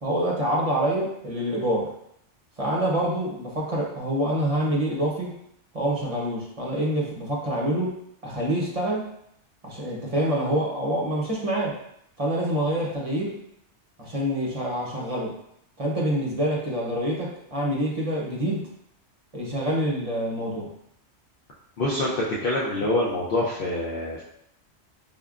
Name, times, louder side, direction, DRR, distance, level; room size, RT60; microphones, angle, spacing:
voice 1, 0.0-1.9 2.6-5.3 5.7-7.9 8.2-9.1 9.6-11.8 12.2-13.4 14.0-15.3 15.8-18.7 19.3-20.7, right 1 dB, 35° right, -4 dB, 0.8 m, -26 dB
voice 2, 21.8-22.1 22.4-24.2, left 1 dB, 60° left, -6 dB, 0.8 m, -25 dB
5.3 x 2.2 x 2.4 m, 0.74 s
omnidirectional pair, 1.2 m